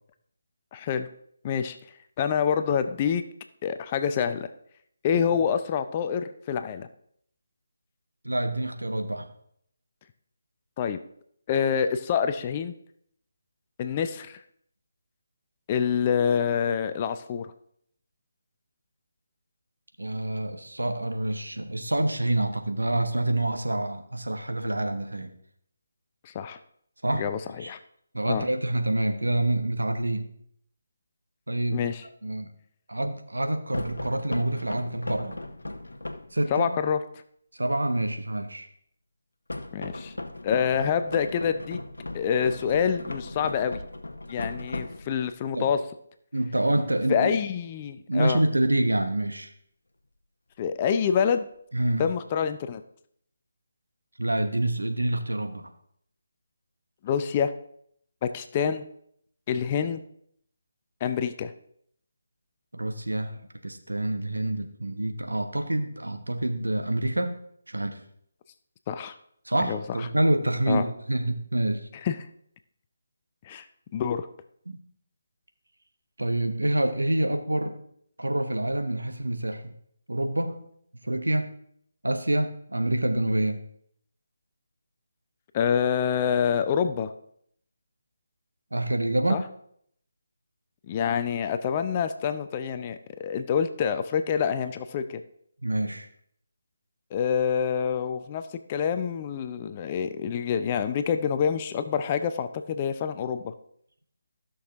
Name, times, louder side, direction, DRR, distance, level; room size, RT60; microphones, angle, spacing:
voice 1, 0.7-1.1 1.4-1.8 2.2-3.2 3.6-4.5 5.0-6.9 10.8-11.0 11.5-12.7 13.8-14.4 15.7-17.5 26.2-26.6 27.1-27.8 28.3-28.4 31.7-32.0 36.5-37.0 39.7-40.1 40.4-41.8 42.1-43.8 44.3-45.9 47.1-48.4 50.6-51.5 52.0-52.8 57.0-57.5 58.2-58.9 59.5-60.0 61.0-61.5 68.9-69.1 69.7-70.1 70.7-70.8 72.0-72.2 73.4-73.6 73.9-74.3 85.5-87.1 89.3-89.4 90.9-95.2 97.1-103.5, left 7 dB, 25° left, 10 dB, 0.5 m, -26 dB
voice 2, 8.2-9.3 20.0-25.3 27.0-27.2 27.6-27.7 28.1-30.3 31.5-31.9 32.2-32.5 32.9-35.4 36.3-36.7 37.5-38.7 45.5-45.7 46.3-47.3 48.1-49.5 51.7-52.1 54.2-55.7 62.7-67.4 67.7-68.0 69.4-71.9 74.7-74.8 76.2-77.8 78.2-79.7 80.1-80.6 81.0-81.5 82.0-83.6 88.7-89.4 95.6-96.1, right 1 dB, 80° right, 6 dB, 1.1 m, -27 dB
sound 1, 33.7-36.4 39.5-45.4, left 2 dB, 75° left, 0.8 m, -37 dB
14.5 x 6.3 x 3.5 m, 0.68 s
figure-of-eight pair, 150°, 0 cm